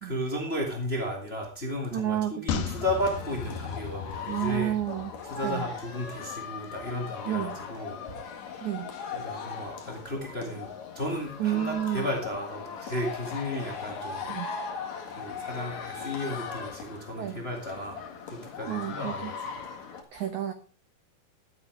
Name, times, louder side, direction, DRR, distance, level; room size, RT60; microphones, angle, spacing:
voice 1, 0.0-4.7 5.3-8.2 8.4-8.6 9.1-14.3 15.1-18.0 18.3-19.7, left 1 dB, 25° left, 1 dB, 1.4 m, -34 dB
voice 2, 1.9-2.7 4.3-5.1 5.4-5.7 7.3-7.6 8.6-8.9 11.4-12.1 14.3-14.5 17.1-17.4 18.7-19.3 20.1-20.5, right 12 dB, 75° right, 8 dB, 1.7 m, -30 dB
sound 1, 2.5-5.9 6.2-6.3, left 8 dB, 70° left, 2.8 m, -36 dB
sound 2, 2.8-20.0, left 6 dB, 50° left, 2.7 m, -39 dB
12.5 x 9.6 x 4.8 m, 0.37 s
omnidirectional pair, 4.8 m